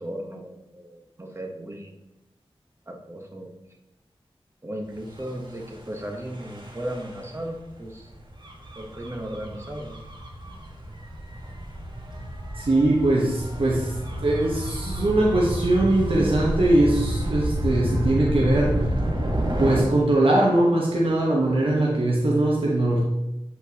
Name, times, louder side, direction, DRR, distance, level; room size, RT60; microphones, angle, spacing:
voice 1, 0.0-2.0 2.9-3.5 4.6-8.1 8.7-10.0, right 1 dB, 25° right, 2 dB, 1.0 m, -36 dB
Gull seagull / Waves surf / Siren, 5.1-19.8, right 1 dB, 45° right, 1.4 m, -30 dB
voice 2, 12.6-13.9 14.2-18.8 19.6-23.0, right 1 dB, 65° right, -4 dB, 1.1 m, -21 dB
8.2 x 4.5 x 2.8 m, 0.94 s
wide cardioid pair, 60°, 10 cm